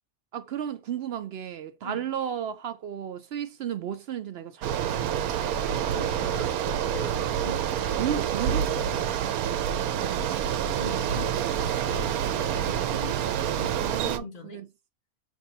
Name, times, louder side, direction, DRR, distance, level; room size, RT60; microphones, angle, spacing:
voice 1, 0.3-5.3 8.0-8.7 9.9-10.4 11.4-11.6 13.8-14.7, right 9 dB, 65° right, 0.6 m, -34 dB
Bicycle, 4.6-14.2, right 9 dB, 85° right, 1.1 m, -27 dB
voice 2, 5.6-9.0 10.7-14.6, left 4 dB, 40° left, 1.4 m, -42 dB
5.4 x 3.5 x 2.7 m
omnidirectional pair, 1.5 m